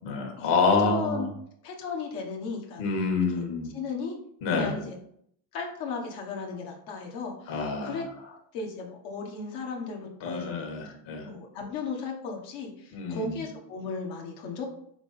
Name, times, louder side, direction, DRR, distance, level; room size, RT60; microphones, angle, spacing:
voice 1, 0.0-1.2 2.8-3.7 4.4-4.8 7.5-8.0 10.2-11.3 12.9-13.4, left 4 dB, 70° left, 2 dB, 1.9 m, -27 dB
voice 2, 0.8-1.3 1.6-2.9 3.3-3.4 3.7-4.1 4.5-5.0 5.5-8.0 8.5-10.9 11.2-14.7, left 4 dB, 85° left, 0 dB, 1.4 m, -36 dB
6.0 x 3.7 x 4.2 m, 0.68 s
cardioid pair, 140°, 47 cm